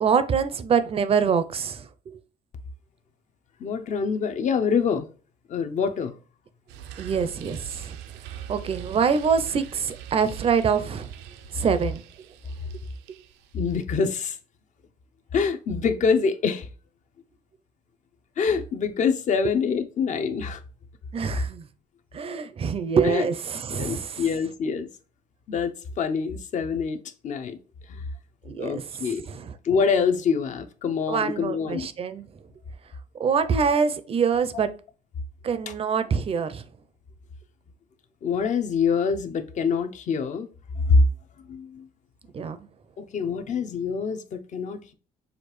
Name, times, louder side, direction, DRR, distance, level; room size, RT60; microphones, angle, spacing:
voice 1, 0.0-2.2 7.0-8.0 8.5-11.1 11.5-12.0 21.1-21.7 22.1-24.2 28.4-29.5 31.1-32.3 33.2-34.7 35.4-36.6 42.3-42.7, right 6 dB, 35° right, 0.5 m, -25 dB
voice 2, 3.6-5.1 5.5-6.2 13.5-14.4 15.3-16.7 18.4-20.6 23.0-23.3 23.7-24.9 25.5-27.6 27.9-28.0 28.6-29.2 29.6-31.9 35.7-35.8 38.2-40.5 40.9-41.0 41.5-41.9 43.0-44.9, left 5 dB, 45° left, 0.6 m, -25 dB
sound 1, 6.7-13.8, right 10 dB, 85° right, 0.5 m, -42 dB
6.4 x 2.4 x 3.1 m
cardioid pair, 110°, 17 cm